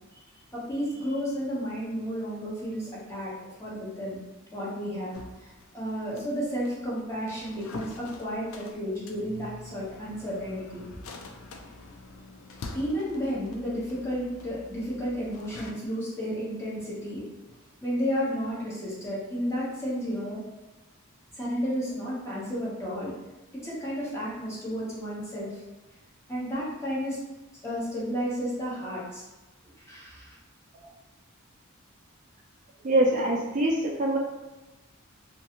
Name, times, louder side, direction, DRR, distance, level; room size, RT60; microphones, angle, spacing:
voice 1, 0.5-3.3 3.6-4.2 4.5-10.8 12.7-17.3 17.8-20.4 21.3-23.1 23.5-25.6 26.3-27.2 27.6-29.2 29.8-30.4, equal, 15° left, -8 dB, 0.9 m, -32 dB
sound 1, 5.1-15.7, left 3 dB, 70° left, 0.3 m, -45 dB
voice 2, 32.8-34.2, right 1 dB, 35° right, -3 dB, 0.3 m, -24 dB
2.5 x 2.2 x 2.8 m, 1.1 s
head